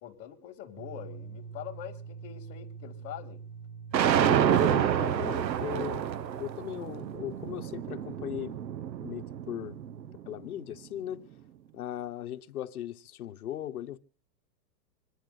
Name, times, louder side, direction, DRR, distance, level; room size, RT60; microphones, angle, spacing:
voice 1, 0.0-3.4, left 11 dB, 25° left, 2.2 m, -44 dB
sound 1, 0.8-10.1, right 6 dB, 50° right, 2.3 m, -46 dB
sound 2, 3.9-10.1, right 9 dB, 90° right, 1.2 m, -28 dB
voice 2, 4.1-6.1 6.4-8.5 9.0-9.8 10.2-11.2 11.7-14.0, left 11 dB, 60° left, 1.3 m, -38 dB
26.5 x 10.0 x 4.0 m
supercardioid pair, 175°, 50 cm